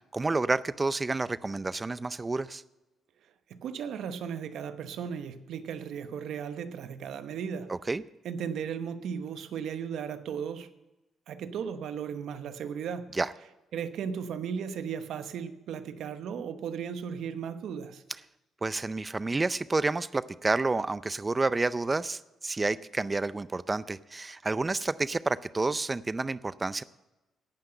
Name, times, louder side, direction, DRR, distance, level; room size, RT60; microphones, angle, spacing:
voice 1, 0.1-2.6 7.7-8.0 13.1-13.3 18.6-26.8, right 3 dB, 25° right, 0.5 m, -29 dB
voice 2, 3.5-7.7 8.2-10.7 11.3-13.1 13.7-18.0, right 7 dB, 75° right, 0.9 m, -36 dB
17.5 x 5.8 x 7.8 m
cardioid pair, 90°, 0 cm